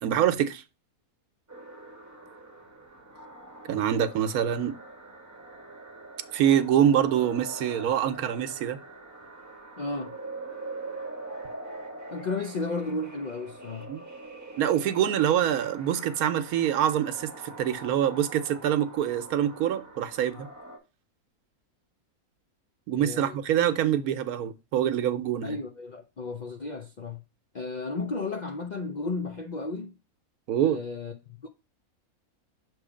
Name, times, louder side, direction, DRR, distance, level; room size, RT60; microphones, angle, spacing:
voice 1, 0.0-0.6 3.7-4.7 6.3-8.8 13.9-14.0 14.6-20.5 22.9-25.6 30.5-30.8, right 10 dB, 80° right, 1.1 m, -25 dB
sound 1, 1.5-20.8, right 2 dB, 15° right, 0.8 m, -43 dB
voice 2, 9.8-10.2 12.1-13.9 22.9-23.4 25.4-27.2 27.5-29.9 30.6-31.5, left 3 dB, 60° left, 0.4 m, -33 dB
6.3 x 3.1 x 4.9 m
omnidirectional pair, 1.5 m